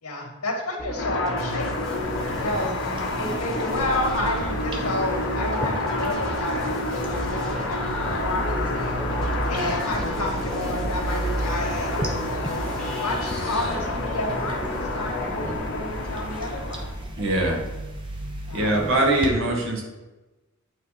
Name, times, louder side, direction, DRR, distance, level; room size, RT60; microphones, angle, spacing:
voice 1, 0.0-1.8 2.4-2.7 3.2-9.1 9.5-12.7 13.0-16.9 18.5-18.9, left 1 dB, 90° left, 1 dB, 2.0 m, -31 dB
sound 1, 0.8-15.6, left 1 dB, 5° left, 1.4 m, -33 dB
sound 2, 1.0-17.0, left 2 dB, 60° left, 1.2 m, -30 dB
sound 3, 1.9-19.3, right 1 dB, 25° right, 1.0 m, -34 dB
voice 2, 17.2-17.6 18.5-19.8, right 1 dB, 60° right, -1 dB, 1.8 m, -22 dB
9.1 x 4.0 x 5.8 m, 1.1 s
head